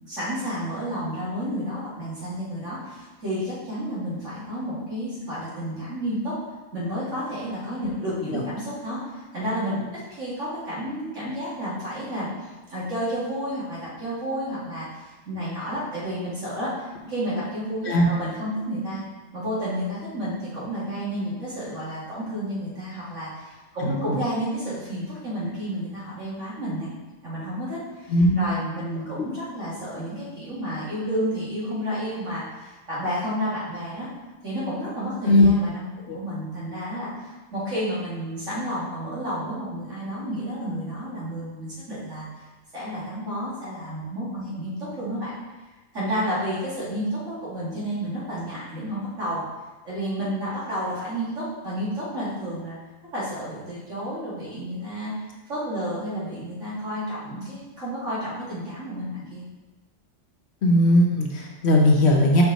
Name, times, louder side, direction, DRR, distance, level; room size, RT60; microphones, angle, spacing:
voice 1, 0.1-6.3 6.7-12.3 12.7-19.0 19.3-26.9 27.2-34.1 34.4-42.2 42.7-45.3 45.9-49.4 49.8-52.8 53.1-55.1 55.5-59.4, equal, 70° right, -9 dB, 2.7 m, -31 dB
voice 2, 23.8-24.2 28.1-28.5 29.2-29.3 35.2-35.5 36.1-36.2 60.6-62.4, left 1 dB, 60° left, 0 dB, 1.1 m, -19 dB
5.4 x 4.7 x 4.0 m, 1.2 s
omnidirectional pair, 1.4 m